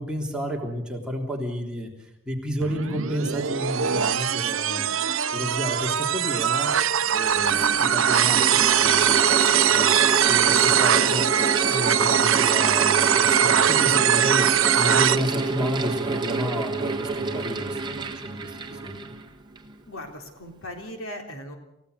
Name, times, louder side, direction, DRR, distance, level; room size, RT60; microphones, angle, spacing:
voice 1, 0.0-4.9 5.3-6.7 7.1-11.3 11.7-19.1, equal, 5° right, -1 dB, 3.3 m, -31 dB
sound 1, 2.6-15.2, right 9 dB, 65° right, 0.8 m, -21 dB
sound 2, 4.5-5.3 7.2-10.8, equal, 30° left, 4.9 m, -42 dB
Mechanical fan, 6.1-6.2 7.1-19.7, right 3 dB, 20° right, 1.6 m, -28 dB
voice 2, 19.9-21.5, left 1 dB, 75° left, 3 dB, 3.8 m, -38 dB
28.0 x 16.0 x 6.8 m, 0.84 s
head